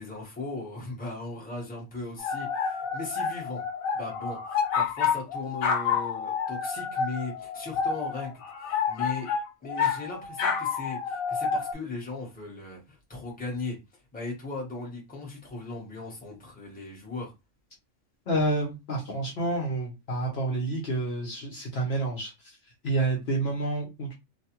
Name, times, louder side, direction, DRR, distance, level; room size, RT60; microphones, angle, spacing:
voice 1, 0.0-3.6 3.9-9.3 9.6-17.3, left 3 dB, 10° left, 0.8 m, -38 dB
sound 1, 2.2-11.7, left 6 dB, 85° left, 1.0 m, -29 dB
voice 2, 18.3-22.3 22.8-24.1, right 2 dB, 55° left, 0.9 m, -29 dB
2.5 x 2.2 x 2.8 m
omnidirectional pair, 1.4 m